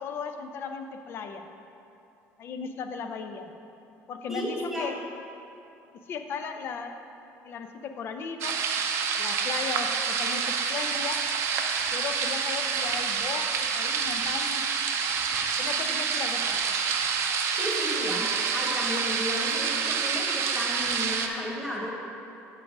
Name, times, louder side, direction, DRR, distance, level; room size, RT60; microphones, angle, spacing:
voice 1, 0.0-1.5 2.4-3.5 4.1-4.9 6.1-6.9 7.4-8.6 9.2-11.2 11.9-14.6 15.6-16.6, left 5 dB, 45° left, 6 dB, 0.5 m, -36 dB
voice 2, 4.3-4.9 17.6-21.9, equal, 5° right, -3 dB, 1.3 m, -33 dB
sound 1, 8.4-21.3, right 6 dB, 55° right, 0.6 m, -28 dB
7.6 x 4.7 x 6.0 m, 2.8 s
cardioid pair, 155°, 5 cm